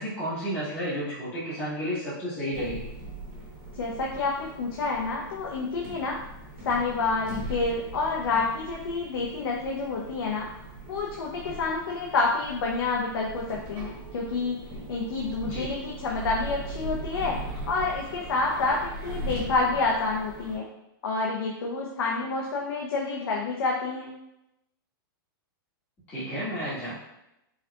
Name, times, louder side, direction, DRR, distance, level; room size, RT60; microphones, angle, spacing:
voice 1, 0.0-2.9 15.4-15.7 26.1-26.9, equal, 15° left, -12 dB, 1.3 m, -32 dB
sound 1, 2.5-20.6, right 2 dB, 30° right, 0.9 m, -40 dB
voice 2, 3.7-6.2 6.6-10.5 10.9-14.6 14.9-20.7 21.0-24.1, left 3 dB, 85° left, -2 dB, 0.6 m, -28 dB
4.7 x 2.8 x 2.2 m, 0.87 s
supercardioid pair, 175°, 12 cm